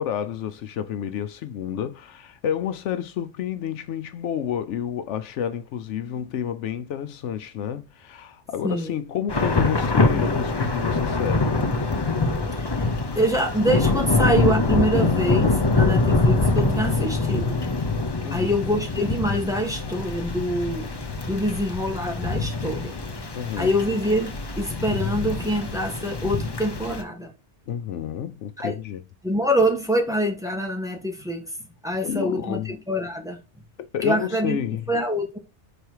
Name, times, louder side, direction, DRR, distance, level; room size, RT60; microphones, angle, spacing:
voice 1, 0.0-11.7 18.2-18.5 23.3-23.7 27.7-29.0 32.0-32.8 33.8-34.9, left 9 dB, 80° left, 0.9 m, -30 dB
Thunder / Rain, 9.3-27.0, left 3 dB, 25° left, 0.6 m, -24 dB
voice 2, 13.1-17.6 18.3-22.9 23.6-27.3 28.6-28.8 29.2-31.4 31.8-32.6 32.9-33.4 34.0-34.6 34.9-35.4, equal, 5° right, 1.5 m, -25 dB
5.1 x 4.4 x 4.6 m
omnidirectional pair, 1.2 m